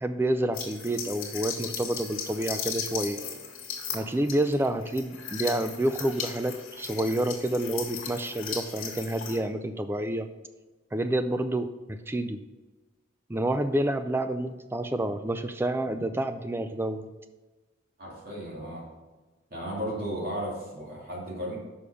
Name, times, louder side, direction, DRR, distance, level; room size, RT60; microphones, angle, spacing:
voice 1, 0.0-3.2 3.9-10.3 10.9-12.4 13.3-17.1, right 1 dB, 10° right, 10 dB, 0.3 m, -28 dB
sound 1, 0.5-9.4, left 7 dB, 75° left, 1.8 m, -37 dB
voice 2, 18.0-18.8 19.5-21.6, equal, 45° right, -4 dB, 2.5 m, -34 dB
6.7 x 5.5 x 4.9 m, 1.2 s
head